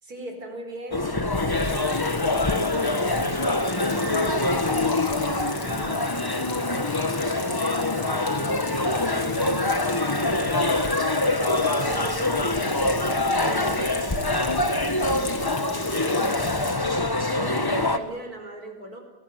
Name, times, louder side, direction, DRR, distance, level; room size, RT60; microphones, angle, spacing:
voice 1, 0.0-6.1 6.4-7.0 7.5-9.4 10.3-14.0 14.6-16.4 17.4-19.0, right 1 dB, 40° right, 5 dB, 5.3 m, -40 dB
sound 1, 0.9-18.0, left 2 dB, 15° left, 0.9 m, -24 dB
Water tap faucet / Sink (filling or washing), 1.3-18.0, left 4 dB, 65° left, 3.5 m, -39 dB
26.5 x 20.0 x 9.3 m, 1.0 s
omnidirectional pair, 2.4 m